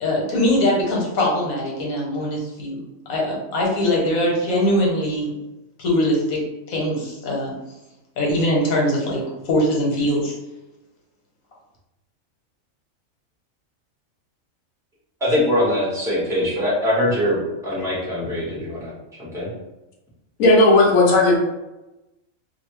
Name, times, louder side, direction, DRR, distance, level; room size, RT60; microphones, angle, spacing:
voice 1, 0.0-2.8 3.1-5.3 5.8-6.4 6.7-7.5 8.2-10.3, left 1 dB, 90° left, -3 dB, 1.4 m, -22 dB
voice 2, 15.2-18.9 19.2-19.5, left 1 dB, ahead, -8 dB, 1.1 m, -22 dB
voice 3, 20.4-21.4, left 2 dB, 75° left, -2 dB, 1.1 m, -14 dB
2.7 x 2.6 x 3.1 m, 1.0 s
omnidirectional pair, 1.4 m